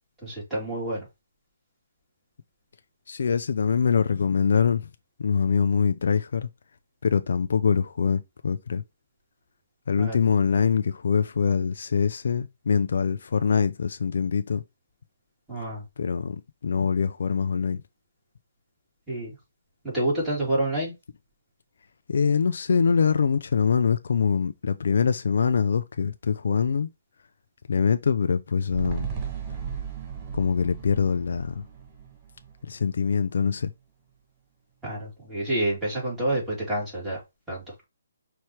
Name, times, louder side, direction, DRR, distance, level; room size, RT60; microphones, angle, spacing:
voice 1, 0.2-1.1 10.0-10.2 15.5-15.8 19.1-19.3 19.8-20.9 34.8-37.2 37.5-37.6, right 1 dB, 5° right, 2.9 m, -28 dB
voice 2, 3.1-4.9 5.2-6.5 7.0-8.8 9.9-14.6 16.0-16.4 16.6-17.8 22.1-26.9 27.7-29.1 30.3-31.6 32.7-33.7, left 6 dB, 65° left, 0.5 m, -24 dB
sound 1, 28.7-33.2 33.5-33.6, right 7 dB, 20° right, 0.9 m, -36 dB
5.7 x 3.0 x 3.1 m
hypercardioid pair, 160°, 0 cm